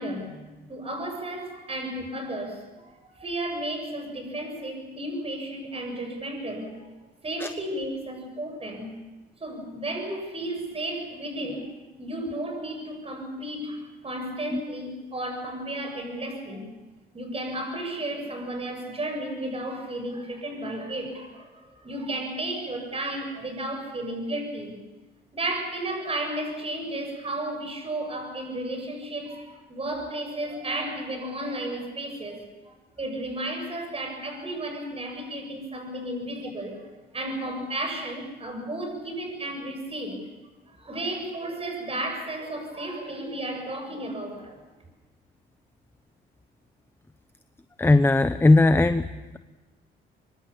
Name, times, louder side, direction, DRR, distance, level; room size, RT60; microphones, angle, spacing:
voice 1, 0.0-6.8 7.2-8.9 9.4-11.7 12.0-16.7 17.1-21.5 21.8-24.8 25.3-32.4 32.7-36.9 37.1-40.2 40.8-44.6, right 1 dB, 30° right, 5 dB, 7.5 m, -33 dB
voice 2, 47.8-49.1, left 2 dB, 10° left, 11 dB, 0.9 m, -18 dB
25.0 x 24.0 x 7.3 m, 1.1 s
cardioid pair, 90°, 20 cm